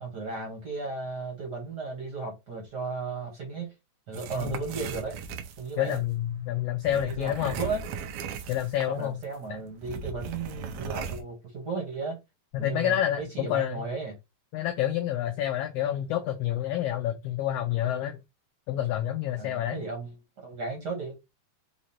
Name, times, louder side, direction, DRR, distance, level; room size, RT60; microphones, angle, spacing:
voice 1, 0.0-3.7 4.1-5.1 5.6-6.0 7.0-7.8 8.9-12.2 12.6-14.1 19.4-20.2 20.4-21.1, right 4 dB, 50° right, 1.3 m, -35 dB
sound 1, 4.1-6.0 6.8-9.0 9.2-9.4 9.8-11.2, right 6 dB, 80° right, 1.3 m, -37 dB
voice 2, 5.8-7.6 8.5-9.1 9.5-9.6 12.5-13.8 14.5-18.2 18.7-19.8, left 11 dB, 90° left, 1.3 m, -28 dB
5.0 x 3.0 x 2.8 m
omnidirectional pair, 3.3 m